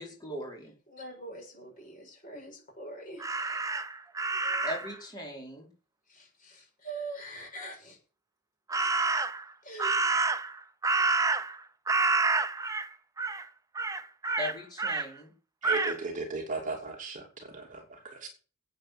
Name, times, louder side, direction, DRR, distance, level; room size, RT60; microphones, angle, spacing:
voice 1, 0.0-0.7 4.6-5.7 14.4-15.3, left 1 dB, 20° left, 4.9 m, -39 dB
voice 2, 0.9-3.8 6.1-8.0 8.7-8.9 9.1-9.3 9.6-10.0, right 2 dB, 40° left, 6.9 m, -44 dB
Crow, 3.2-4.9 8.7-9.4 9.8-11.6 11.9-12.9 13.2-13.4 13.7-15.1 15.6-16.0, right 3 dB, 15° right, 0.6 m, -28 dB
voice 3, 15.6-18.3, right 3 dB, 35° right, 2.7 m, -36 dB
14.0 x 8.8 x 7.1 m
head